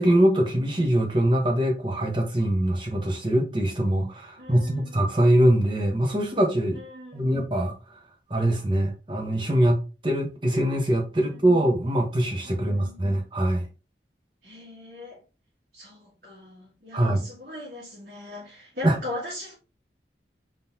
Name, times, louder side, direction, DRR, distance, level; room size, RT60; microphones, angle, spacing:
voice 1, 0.0-6.8 7.1-7.7 8.3-13.6 16.9-17.2 18.8-19.0, right 1 dB, 25° right, 0.9 m, -23 dB
voice 2, 4.4-5.0 6.7-7.3 11.2-11.5 12.4-13.0 14.4-15.2 15.7-19.6, left 2 dB, 55° right, 1.4 m, -40 dB
3.8 x 2.8 x 3.6 m
head